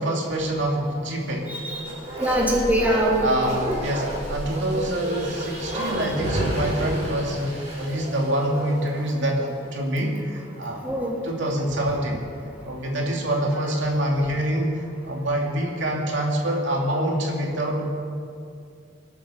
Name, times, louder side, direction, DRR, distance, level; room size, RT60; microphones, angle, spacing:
voice 1, 0.0-1.5 3.2-10.9 11.2-12.2 12.6-17.9, right 1 dB, 70° right, -1 dB, 2.6 m, -26 dB
voice 2, 1.5-1.9 2.2-3.6 5.5-6.1 10.8-11.1, right 1 dB, 10° right, -4 dB, 2.7 m, -24 dB
Bark, 1.5-9.0 9.4-9.5, right 1 dB, 35° right, 4.6 m, -30 dB
26.0 x 8.8 x 5.7 m, 2.4 s
head